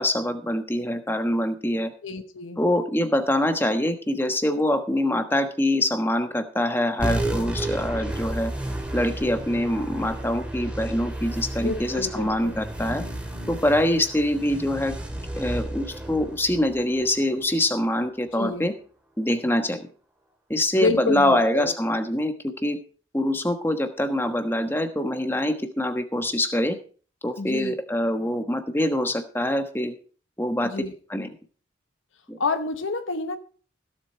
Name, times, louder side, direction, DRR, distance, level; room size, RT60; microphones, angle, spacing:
voice 1, 0.0-1.9 2.6-8.5 8.9-13.0 13.5-14.9 15.4-18.7 19.2-19.9 20.5-22.8 23.1-26.8 27.2-29.9 30.4-30.7 31.1-31.3 32.3-32.4, left 1 dB, 10° left, 7 dB, 1.2 m, -24 dB
voice 2, 2.0-2.6 11.6-12.6 18.4-18.7 20.8-21.7 27.4-27.7 30.6-30.9 32.4-33.4, left 3 dB, 90° left, 8 dB, 1.1 m, -28 dB
sound 1, 7.0-17.9, right 1 dB, 5° right, 2.7 m, -32 dB
16.0 x 7.6 x 4.5 m, 0.41 s
head